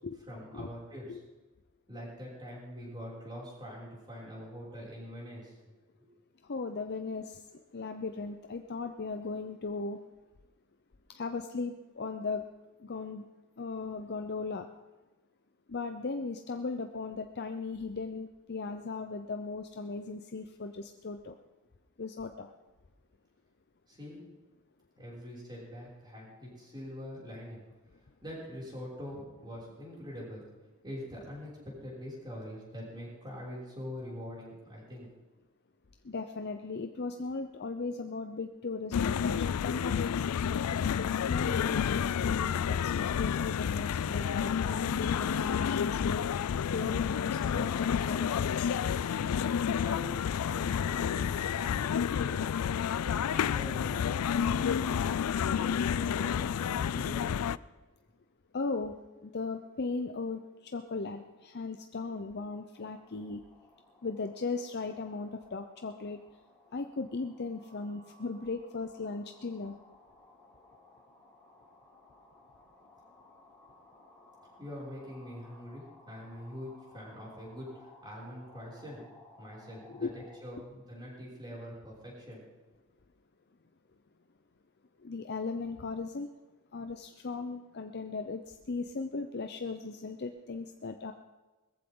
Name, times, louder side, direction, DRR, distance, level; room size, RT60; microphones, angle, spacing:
voice 1, 0.3-1.2 1.9-5.5 6.0-6.1 23.9-24.2 25.0-27.6 28.2-30.5 30.8-35.1 49.8-52.4 53.0-54.1 55.4-57.3 74.6-79.1 79.4-82.4, equal, 20° right, -5 dB, 6.2 m, -44 dB
voice 2, 6.4-7.4 7.7-10.0 11.1-12.5 12.8-13.2 13.6-14.7 15.7-21.4 22.0-22.5 36.0-40.3 40.7-46.3 46.7-48.7 58.5-63.4 64.0-66.2 66.7-69.8 79.9-80.1 85.0-86.3 86.7-91.1, left 4 dB, 50° left, 7 dB, 0.7 m, -37 dB
sound 1, 38.9-57.6, left 8 dB, 80° left, 0.4 m, -30 dB
sound 2, 62.7-80.4, left 2 dB, 5° left, 4.7 m, -59 dB
20.5 x 15.0 x 3.8 m, 1.2 s
head